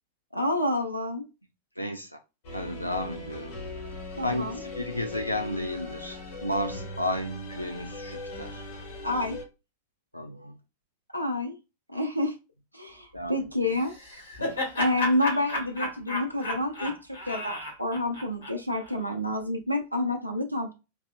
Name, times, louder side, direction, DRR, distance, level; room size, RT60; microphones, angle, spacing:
voice 1, 0.3-1.3 4.2-4.6 9.0-9.4 11.1-11.5 11.9-12.3 12.7-13.9 14.8-20.7, left 1 dB, 90° right, 0.6 m, -28 dB
voice 2, 1.8-2.2 2.5-3.6 4.2-8.7 10.1-10.5 13.1-13.5 14.4-14.6, left 1 dB, 90° left, 0.3 m, -33 dB
sound 1, 2.4-9.4, left 2 dB, 55° left, 1.5 m, -39 dB
Laughter, 13.7-18.9, left 1 dB, 75° left, 1.8 m, -33 dB
3.9 x 2.7 x 2.3 m
figure-of-eight pair, 90°, 0 cm